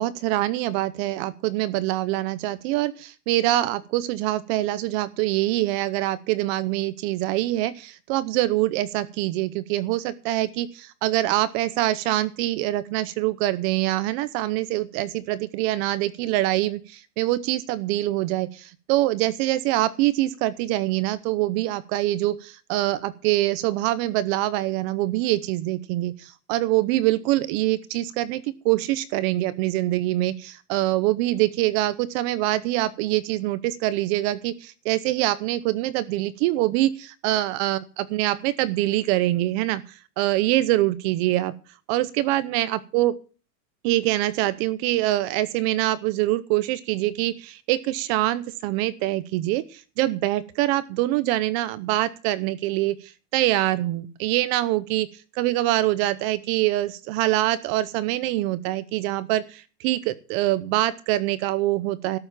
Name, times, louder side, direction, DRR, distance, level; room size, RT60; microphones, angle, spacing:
voice 1, 0.0-41.5 41.9-43.1 43.8-62.2, right 16 dB, 40° right, 16 dB, 0.8 m, -24 dB
13.0 x 7.0 x 7.4 m, 0.37 s
supercardioid pair, 150°, 48 cm